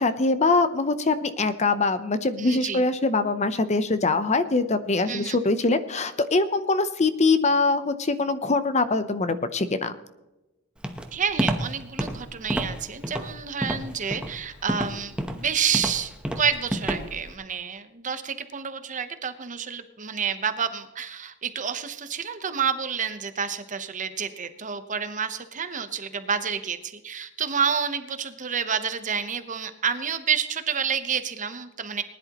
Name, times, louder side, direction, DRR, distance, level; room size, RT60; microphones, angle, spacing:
voice 1, 0.0-9.9, left 3 dB, 30° left, 12 dB, 0.7 m, -23 dB
voice 2, 2.4-2.8 5.1-5.4 11.1-32.0, right 7 dB, 35° right, 10 dB, 0.9 m, -29 dB
Walk footsteps, 10.8-17.3, equal, 5° right, 1.0 m, -29 dB
20.0 x 10.5 x 3.0 m, 0.99 s
head